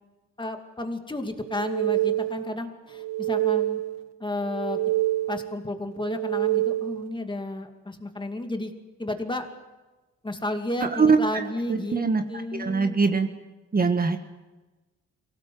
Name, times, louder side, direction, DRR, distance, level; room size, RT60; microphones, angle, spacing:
voice 1, 0.4-3.8 4.2-4.8 5.3-8.7 9.0-9.5 10.2-13.0, left 1 dB, 15° left, 5 dB, 2.5 m, -32 dB
sound 1, 1.4-2.6 2.9-4.1 4.4-5.6 6.0-7.1, right 16 dB, 60° right, 0.8 m, -27 dB
voice 2, 10.9-11.4 11.7-12.2 12.5-13.3 13.7-14.2, right 4 dB, 30° right, 6 dB, 1.5 m, -22 dB
23.5 x 17.5 x 7.8 m, 1.2 s
cardioid pair, 90°, 30 cm